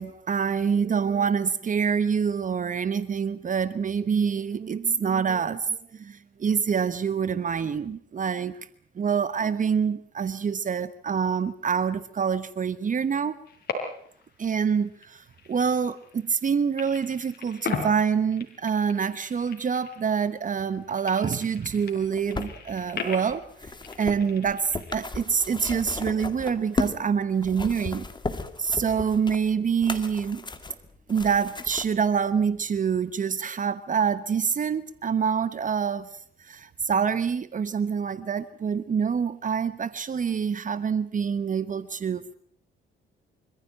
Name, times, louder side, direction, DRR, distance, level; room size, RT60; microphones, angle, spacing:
voice 1, 0.0-8.6 9.0-13.4 14.4-23.7 24.0-28.1 28.6-30.4 31.1-36.1 36.4-42.4, right 6 dB, 40° right, 14 dB, 1.1 m, -26 dB
sound 1, 13.4-14.2 14.5-16.5 16.8-20.3 20.6-24.9, left 4 dB, 55° left, 5.3 m, -38 dB
sound 2, 21.9-27.0 27.4-31.9 32.7-32.8, left 3 dB, 20° left, 2.3 m, -35 dB
25.0 x 15.0 x 8.9 m, 0.64 s
cardioid pair, 90°, 20 cm